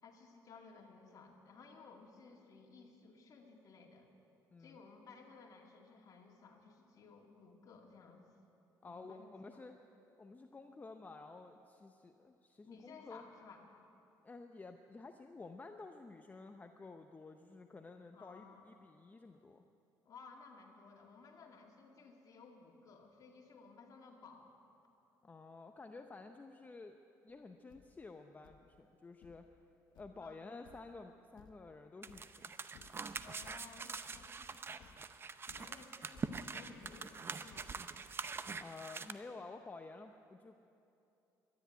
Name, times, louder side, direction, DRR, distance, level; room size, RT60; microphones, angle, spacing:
voice 1, 0.0-4.1 4.6-8.2 8.8-9.6 12.6-13.7 18.1-18.7 20.1-24.5 30.2-30.5 33.2-34.8 35.5-37.8, left 4 dB, 50° left, 0 dB, 2.2 m, -57 dB
voice 2, 8.8-9.7 10.2-13.2 14.2-19.6 25.2-27.0 27.2-29.5 30.0-32.5 38.6-40.6, left 3 dB, 20° left, 6 dB, 0.6 m, -52 dB
Thump thud, 27.3-27.4 27.7-37.7, left 7 dB, 75° left, 0.7 m, -65 dB
sound 1, 32.0-39.1, right 5 dB, 30° right, 0.6 m, -44 dB
12.5 x 10.5 x 9.3 m, 2.8 s
cardioid pair, 90°, 8 cm